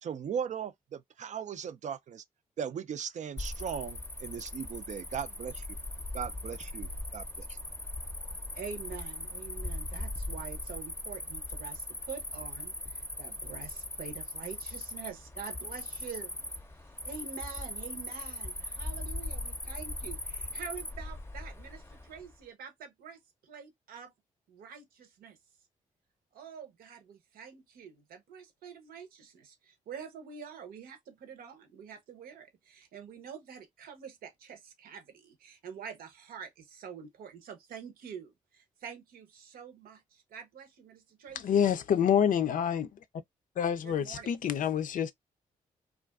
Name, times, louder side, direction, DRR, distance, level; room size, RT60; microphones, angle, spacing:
voice 1, 0.0-2.2 2.6-5.8 6.1-7.6, right 8 dB, 55° right, 0.4 m, -38 dB
Cricket, 3.4-22.3, left 1 dB, 15° left, 0.6 m, -39 dB
voice 2, 8.5-16.3 16.8-24.1 24.5-25.4 26.3-41.6 43.8-44.3, right 7 dB, 80° right, 0.8 m, -46 dB
voice 3, 41.4-42.9 43.6-45.1, left 8 dB, 65° left, 0.4 m, -27 dB
2.4 x 2.3 x 2.3 m
supercardioid pair, 55°, 15 cm